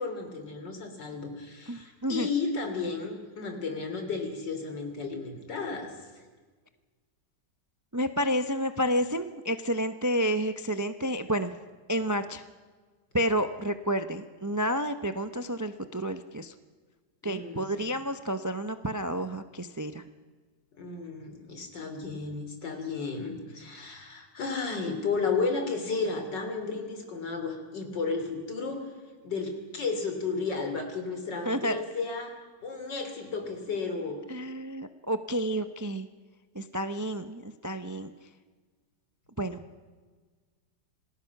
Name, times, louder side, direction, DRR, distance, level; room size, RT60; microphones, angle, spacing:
voice 1, 0.0-5.9 17.2-17.7 20.8-28.9 29.2-32.3 32.6-34.2, left 4 dB, 75° left, 5 dB, 3.7 m, -33 dB
voice 2, 1.7-2.3 7.9-11.5 11.9-12.4 13.1-16.5 17.2-20.0 31.4-31.8 34.3-36.1 36.5-38.1 39.4-39.6, equal, 25° right, 9 dB, 0.4 m, -30 dB
27.0 x 19.5 x 5.9 m, 1.4 s
omnidirectional pair, 1.9 m